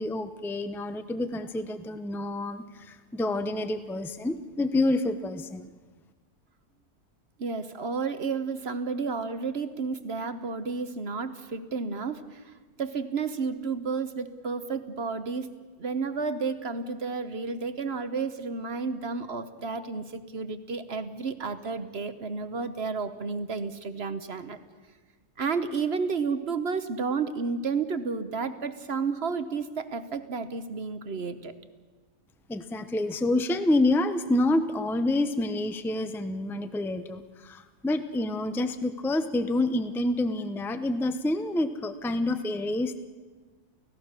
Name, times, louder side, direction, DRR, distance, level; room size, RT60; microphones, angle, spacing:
voice 1, 0.0-5.7 32.5-43.0, left 2 dB, ahead, 11 dB, 0.6 m, -28 dB
voice 2, 7.4-15.5 15.8-24.6 25.4-31.6, right 4 dB, 45° right, 11 dB, 1.1 m, -31 dB
29.5 x 16.5 x 6.6 m, 1.3 s
omnidirectional pair, 1.6 m